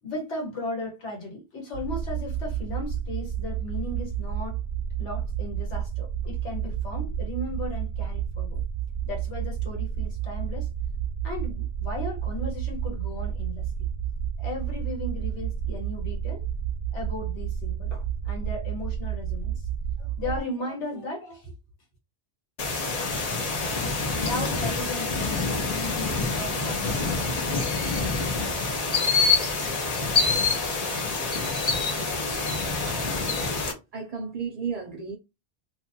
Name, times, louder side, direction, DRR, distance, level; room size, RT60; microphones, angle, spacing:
voice 1, 0.0-4.6 5.0-8.6 9.0-10.7 11.2-13.9 14.4-16.5 16.9-19.7 20.0-21.5 24.2-27.6, left 1 dB, 80° left, 1.4 m, -36 dB
sound 1, 1.7-20.4, right 8 dB, 80° right, 0.9 m, -31 dB
sound 2, 22.6-33.7, left 4 dB, 40° left, 0.7 m, -26 dB
voice 2, 33.9-35.2, right 6 dB, 50° right, 0.5 m, -33 dB
2.8 x 2.5 x 2.7 m
omnidirectional pair, 1.2 m